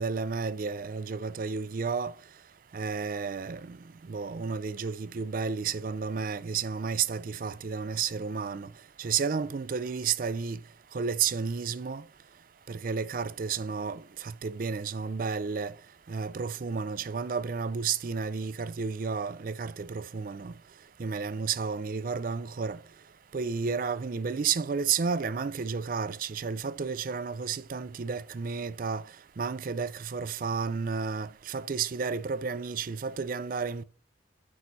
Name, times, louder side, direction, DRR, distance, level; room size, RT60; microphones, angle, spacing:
voice 1, 0.0-2.1 2.7-3.8 4.1-8.7 9.0-10.6 10.9-12.0 12.7-15.7 16.1-20.5 21.0-22.8 23.3-29.0 29.4-33.8, right 5 dB, 45° right, 0.4 m, -32 dB
6.2 x 4.1 x 6.2 m
head